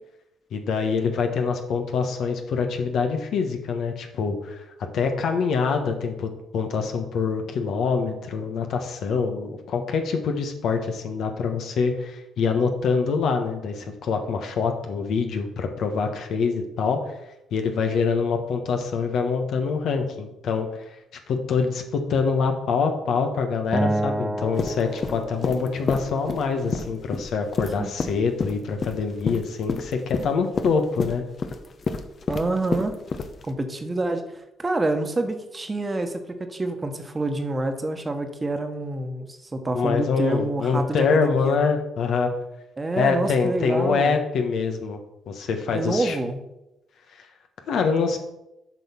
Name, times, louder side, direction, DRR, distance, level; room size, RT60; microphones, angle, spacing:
voice 1, 0.5-4.6 4.9-17.0 17.5-20.8 21.3-31.2 39.7-42.3 43.0-45.0 45.3-46.2 47.7-48.2, left 5 dB, 70° left, 5 dB, 1.3 m, -25 dB
Acoustic guitar, 23.7-27.0, right 1 dB, 10° right, 0.5 m, -30 dB
sound 1, 24.6-33.5, left 4 dB, 50° left, 0.9 m, -29 dB
voice 2, 27.8-28.1 32.3-33.0 33.4-36.2 36.5-41.6 42.8-44.2 45.7-46.4, right 2 dB, 25° right, 6 dB, 1.3 m, -27 dB
7.6 x 4.9 x 5.7 m, 0.89 s
supercardioid pair, 60°, 0 cm